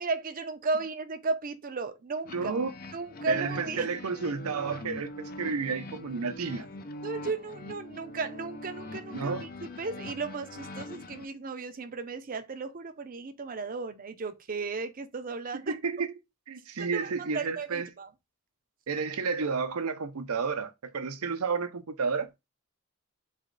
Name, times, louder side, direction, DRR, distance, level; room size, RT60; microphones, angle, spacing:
voice 1, 0.0-2.6 2.9-3.9 7.0-9.5 9.8-15.8 16.8-17.1 17.3-18.1, right 3 dB, 40° right, 0.5 m, -34 dB
sound 1, 2.3-11.3, left 1 dB, 40° left, 0.5 m, -42 dB
voice 2, 2.3-2.7 3.3-6.7 9.1-9.5 15.7-16.1 16.5-17.9 18.9-22.3, right 5 dB, 85° right, 0.6 m, -31 dB
4.2 x 3.1 x 3.8 m
head